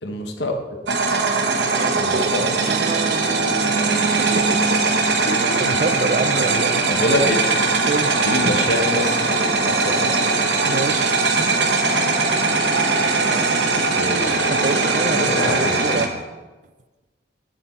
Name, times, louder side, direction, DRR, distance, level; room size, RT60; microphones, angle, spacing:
voice 1, 0.0-0.8 1.9-2.9 5.3-5.6 6.4-6.5 6.9-7.4 7.7-7.9 8.3-10.3 13.9-14.5 15.0-16.1, left 1 dB, 65° left, 4 dB, 1.0 m, -26 dB
sound 1, 0.9-16.1, right 3 dB, 65° right, 0.9 m, -20 dB
voice 2, 2.4-4.8 5.6-6.9 7.8-8.6 10.6-11.6 14.5-16.1, right 3 dB, 40° right, 12 dB, 0.4 m, -28 dB
7.9 x 6.6 x 4.4 m, 1.2 s
head